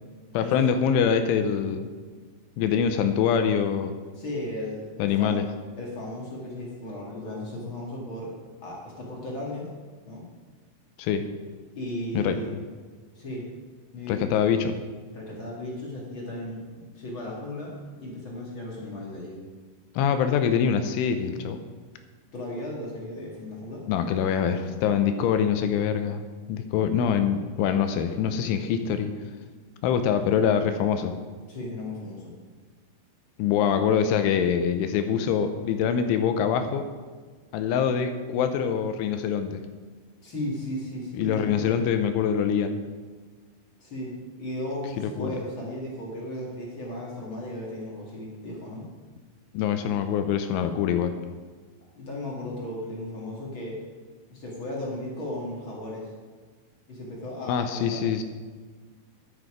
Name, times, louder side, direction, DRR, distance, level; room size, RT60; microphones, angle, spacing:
voice 1, 0.3-1.9 2.6-4.0 5.0-5.4 11.0-11.2 12.1-12.4 14.1-14.8 20.0-21.6 23.9-26.2 26.5-29.1 29.8-31.1 33.4-36.8 37.5-39.6 41.2-42.8 45.0-45.4 49.5-51.1 57.5-58.2, left 7 dB, 80° left, 8 dB, 3.1 m, -24 dB
voice 2, 4.2-5.4 5.8-8.3 8.6-9.7 10.1-10.2 11.7-12.5 13.1-13.5 13.9-14.3 15.1-19.4 22.3-23.8 31.5-32.3 40.2-41.6 43.8-48.8 51.9-53.7 54.3-56.1 56.9-58.0, left 1 dB, 45° left, -3 dB, 1.7 m, -35 dB
11.0 x 9.8 x 5.0 m, 1.4 s
omnidirectional pair, 5.6 m